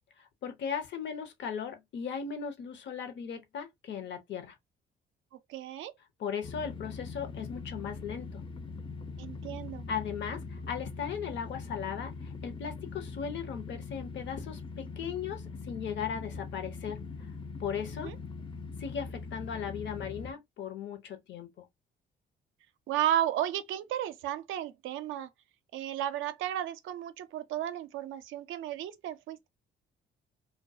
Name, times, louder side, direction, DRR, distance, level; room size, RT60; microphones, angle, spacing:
voice 1, 0.2-4.6 6.2-8.4 9.9-17.0 17.6-18.1 18.8-21.6, left 7 dB, 65° left, 0.7 m, -37 dB
voice 2, 5.5-5.9 9.2-9.9 18.0-18.2 22.9-25.3 25.7-29.5, right 11 dB, 85° right, 0.4 m, -33 dB
sound 1, 6.4-20.3, left 4 dB, 25° left, 0.4 m, -42 dB
2.3 x 2.2 x 2.6 m
cardioid pair, 90°, 20 cm